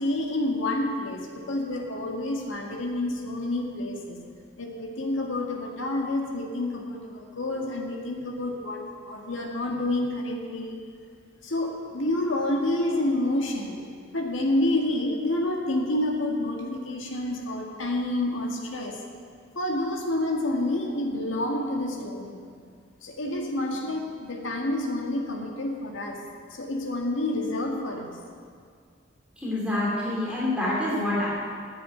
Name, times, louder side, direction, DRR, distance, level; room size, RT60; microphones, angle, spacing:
voice 1, 0.0-4.2 4.6-10.8 11.4-13.9 14.1-19.0 19.6-22.4 23.0-26.2 26.5-28.2, left 1 dB, 85° left, 1 dB, 1.9 m, -28 dB
voice 2, 29.4-31.3, left 1 dB, 5° right, -7 dB, 2.8 m, -26 dB
10.5 x 8.4 x 8.9 m, 2.1 s
head